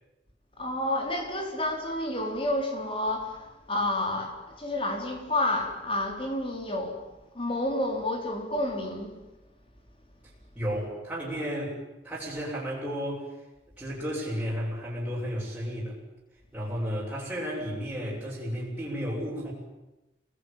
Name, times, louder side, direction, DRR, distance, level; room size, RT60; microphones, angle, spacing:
voice 1, 0.6-7.1 7.3-9.2, left 1 dB, 30° left, 3 dB, 4.6 m, -30 dB
voice 2, 10.5-13.3 13.8-16.0 16.5-19.5, equal, 5° right, -8 dB, 7.6 m, -33 dB
27.5 x 20.5 x 9.3 m, 1.0 s
head